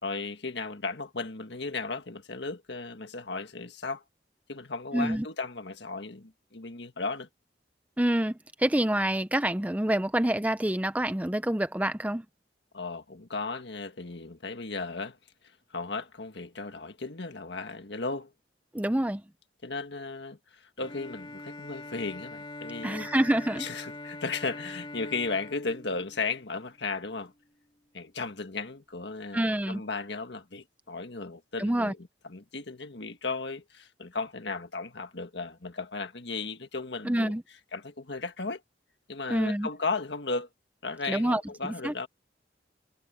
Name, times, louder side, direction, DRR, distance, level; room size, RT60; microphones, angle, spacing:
voice 1, 0.0-4.0 4.5-7.3 12.7-15.2 15.7-18.3 19.6-23.1 23.5-27.3 27.9-37.3 37.7-38.6 39.1-40.5 40.8-42.1, left 3 dB, 65° left, 1.7 m, -35 dB
voice 2, 4.9-5.3 8.0-12.2 18.7-19.2 22.8-23.7 29.3-29.8 31.6-31.9 37.0-37.4 39.3-39.7 41.1-41.9, right 1 dB, 10° right, 0.5 m, -27 dB
Bowed string instrument, 20.8-26.8, left 2 dB, 25° left, 2.5 m, -43 dB
head